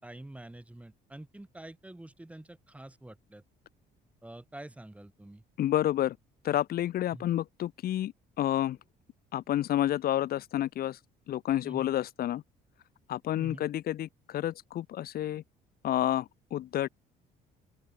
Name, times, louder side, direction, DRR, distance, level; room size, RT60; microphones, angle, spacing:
voice 1, 0.0-3.4 4.2-5.4 7.1-7.3 11.6-11.9 13.3-13.7, right 1 dB, 10° right, 7.1 m, -47 dB
voice 2, 5.6-6.2 6.4-8.8 9.3-11.0 11.3-12.4 13.1-15.4 15.8-16.9, left 12 dB, 65° left, 2.7 m, -30 dB
open air
cardioid pair, 110°, 17 cm